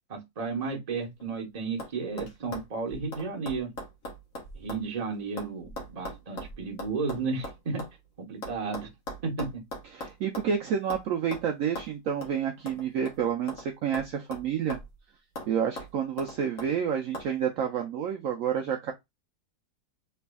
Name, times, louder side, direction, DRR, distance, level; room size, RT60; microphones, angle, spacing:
voice 1, 0.1-3.7 4.5-7.8 8.2-8.9 9.2-9.5, right 4 dB, 30° right, 0.9 m, -33 dB
sound 1, 1.0-1.4 1.8-1.9 2.2-4.9 5.1-7.9 8.4-10.6 10.9-11.1 11.3-11.5 11.8-11.9 12.2-12.3 12.7-13.7 13.9-15.0 15.4-15.5 15.8-16.7 17.1-17.3, left 1 dB, 60° left, 1.5 m, -40 dB
voice 2, 9.9-14.8 15.5-18.9, right 8 dB, 70° right, 0.9 m, -29 dB
3.3 x 3.3 x 2.2 m
omnidirectional pair, 1.7 m